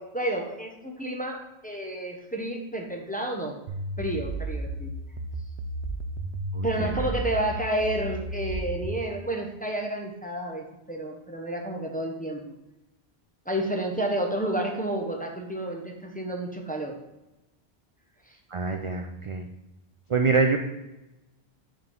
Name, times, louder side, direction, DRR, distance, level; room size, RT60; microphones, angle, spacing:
voice 1, 0.0-3.6 4.0-4.9 6.6-12.5 13.5-17.0 18.3-18.4, right 1 dB, 10° left, 1 dB, 0.6 m, -30 dB
sound 1, 3.7-9.0, right 2 dB, 75° right, 0.9 m, -33 dB
voice 2, 6.5-7.1 18.5-19.4 20.1-20.6, right 4 dB, 50° right, 3 dB, 0.4 m, -25 dB
5.6 x 3.8 x 5.4 m, 0.95 s
omnidirectional pair, 1.1 m